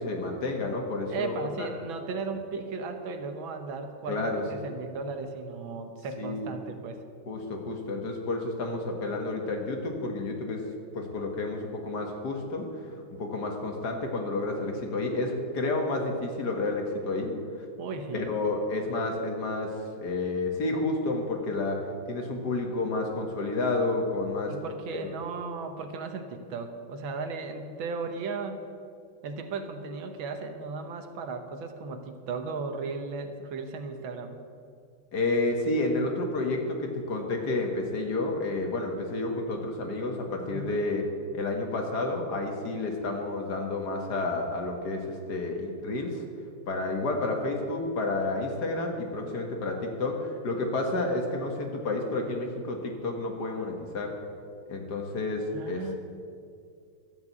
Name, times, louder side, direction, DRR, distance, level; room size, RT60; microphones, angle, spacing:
voice 1, 0.0-1.7 4.1-4.4 6.2-6.5 7.3-10.6 10.9-12.7 13.1-17.3 18.1-21.8 22.1-24.5 24.9-25.1 35.1-41.1 41.3-46.2 46.7-54.1 54.7-56.0, left 2 dB, 55° left, 2 dB, 2.0 m, -30 dB
voice 2, 1.1-7.0 17.8-18.3 24.5-28.6 29.2-34.4 40.4-40.8 55.5-56.0, right 4 dB, 75° right, 6 dB, 1.8 m, -36 dB
12.5 x 8.0 x 8.1 m, 2.4 s
omnidirectional pair, 2.2 m